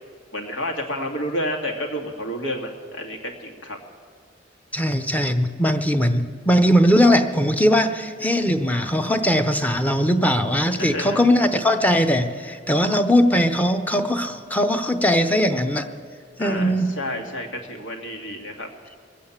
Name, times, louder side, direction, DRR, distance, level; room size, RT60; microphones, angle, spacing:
voice 1, 0.3-3.8 10.8-11.2 16.4-18.7, equal, 85° left, 2 dB, 2.1 m, -30 dB
voice 2, 4.7-15.9 16.4-16.9, equal, 10° left, 7 dB, 0.7 m, -20 dB
22.0 x 8.5 x 7.2 m, 2.1 s
head